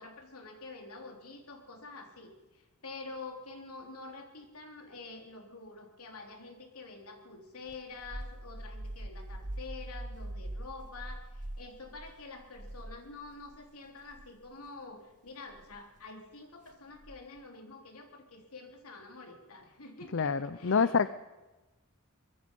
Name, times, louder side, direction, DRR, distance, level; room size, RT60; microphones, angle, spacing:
voice 1, 0.0-21.1, left 3 dB, 75° left, 3 dB, 3.5 m, -47 dB
sound 1, 7.7-13.6 14.0-14.3 15.5-15.8 17.0-17.4, right 1 dB, 35° right, 1.1 m, -43 dB
voice 2, 20.1-21.1, left 5 dB, 60° left, 14 dB, 0.6 m, -27 dB
24.0 x 21.5 x 5.4 m, 1.1 s
head